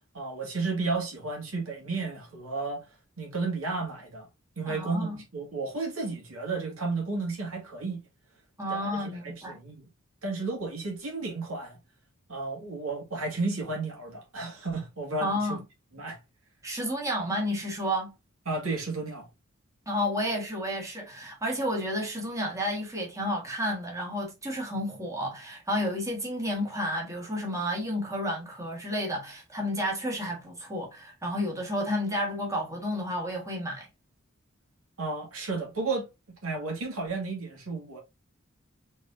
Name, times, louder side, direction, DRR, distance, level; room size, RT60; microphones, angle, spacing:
voice 1, 0.1-2.9 3.2-4.3 4.6-8.0 8.7-9.8 10.2-11.8 12.3-15.6 15.9-16.2 18.5-19.3 35.0-36.1 36.4-38.0, right 3 dB, 80° right, 2.3 m, -33 dB
voice 2, 4.7-5.2 8.6-9.6 15.2-15.6 16.6-18.1 19.9-33.9, equal, 15° right, 1.9 m, -31 dB
4.7 x 4.2 x 2.7 m
head